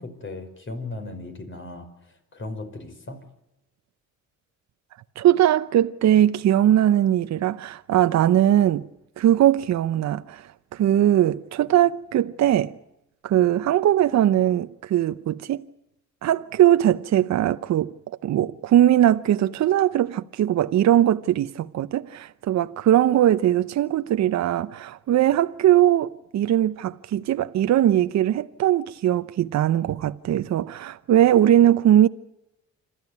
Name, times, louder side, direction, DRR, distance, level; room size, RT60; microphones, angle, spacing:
voice 1, 0.0-3.2, left 2 dB, 40° left, 5.3 m, -37 dB
voice 2, 5.2-8.8 9.2-12.8 13.2-15.6 16.2-18.0 18.2-32.1, right 12 dB, 65° right, 0.8 m, -20 dB
26.5 x 14.0 x 9.5 m
cardioid pair, 90°, 30 cm